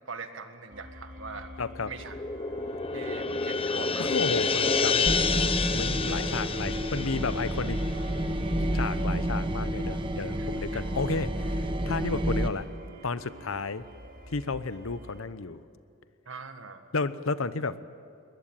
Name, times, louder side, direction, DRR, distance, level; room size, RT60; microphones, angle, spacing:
voice 1, 0.1-1.5 1.9-2.2 2.9-4.1 6.0-6.2 10.4-10.8 16.3-16.8, right 4 dB, 65° right, 7 dB, 1.7 m, -42 dB
sound 1, 0.7-15.3, left 1 dB, 40° right, 2.0 m, -48 dB
voice 2, 1.6-1.9 4.0-7.8 8.6-12.6 13.0-13.8 14.3-15.6 16.9-17.8, left 4 dB, 80° left, 14 dB, 0.9 m, -32 dB
sound 2, 2.0-8.6, left 4 dB, 25° left, 0.7 m, -29 dB
sound 3, 5.1-12.5, right 1 dB, 25° right, 1.0 m, -30 dB
22.5 x 20.0 x 9.0 m, 2.6 s
head